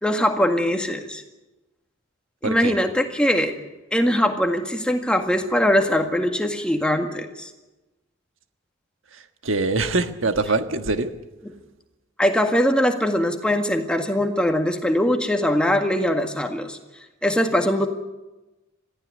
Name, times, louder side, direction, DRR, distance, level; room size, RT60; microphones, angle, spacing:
voice 1, 0.0-1.2 2.4-3.5 3.9-7.5 12.2-16.8 17.2-17.9, equal, 5° left, 4 dB, 1.8 m, -21 dB
voice 2, 2.4-2.8 9.1-11.1, right 3 dB, 75° right, 8 dB, 1.5 m, -24 dB
22.0 x 15.0 x 9.6 m, 1.1 s
head